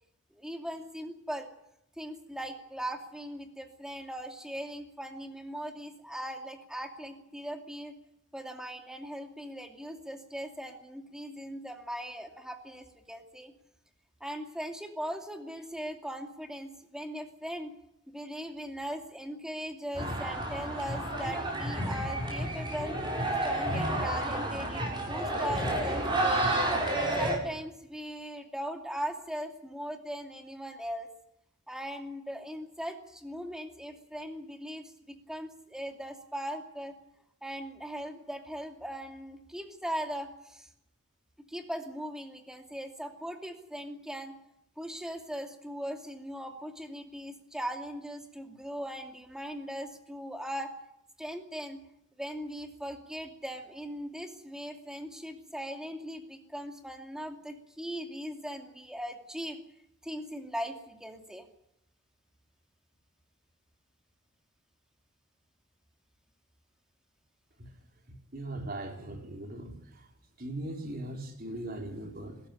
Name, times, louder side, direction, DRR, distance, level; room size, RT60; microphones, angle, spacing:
voice 1, 0.3-1.5 2.0-7.9 8.3-13.5 14.2-17.7 18.1-23.0 23.4-26.5 27.2-31.1 31.7-37.0 37.4-40.7 41.5-44.4 44.8-50.7 51.2-51.8 52.2-59.6 60.0-61.5, equal, 5° right, 4 dB, 2.5 m, -39 dB
sound 1, 19.9-27.4, right 1 dB, 20° right, 5.7 m, -30 dB
voice 2, 68.3-70.1 70.4-72.4, right 1 dB, 45° right, 3 dB, 3.8 m, -39 dB
22.0 x 14.0 x 9.8 m, 0.79 s
head